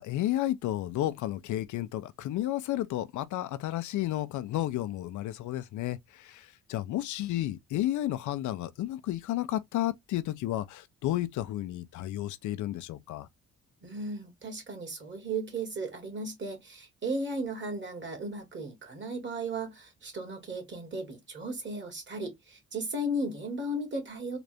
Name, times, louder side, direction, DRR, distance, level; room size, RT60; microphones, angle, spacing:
voice 1, 0.0-13.3, left 14 dB, 75° left, 0.6 m, -32 dB
voice 2, 13.8-24.4, right 1 dB, 40° right, 2.2 m, -35 dB
3.9 x 2.5 x 3.3 m
cardioid pair, 90°, 30 cm